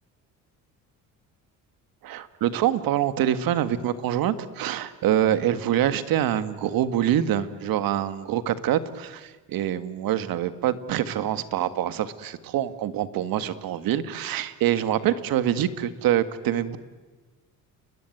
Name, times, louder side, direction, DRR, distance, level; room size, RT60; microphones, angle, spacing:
voice 1, 2.0-16.8, right 11 dB, 70° right, 11 dB, 1.8 m, -25 dB
30.0 x 21.5 x 9.3 m, 1.3 s
cardioid pair, 90°, 36 cm